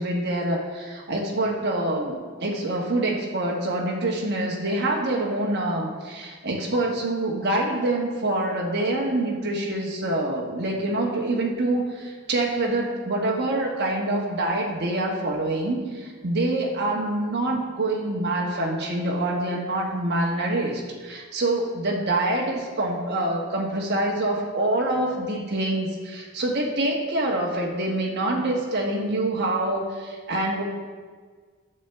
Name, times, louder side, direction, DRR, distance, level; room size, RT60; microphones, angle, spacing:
voice 1, 0.0-30.6, right 1 dB, 50° right, -1 dB, 1.2 m, -26 dB
11.0 x 6.9 x 3.5 m, 1.5 s
head